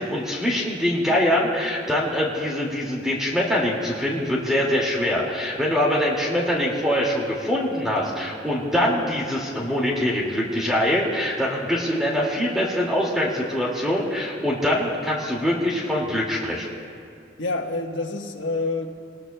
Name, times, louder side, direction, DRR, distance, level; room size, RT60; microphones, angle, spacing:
voice 1, 0.0-16.7, left 1 dB, 5° right, -4 dB, 2.2 m, -23 dB
voice 2, 17.4-18.9, left 3 dB, 90° left, 1 dB, 1.4 m, -27 dB
26.5 x 20.0 x 2.3 m, 2.3 s
head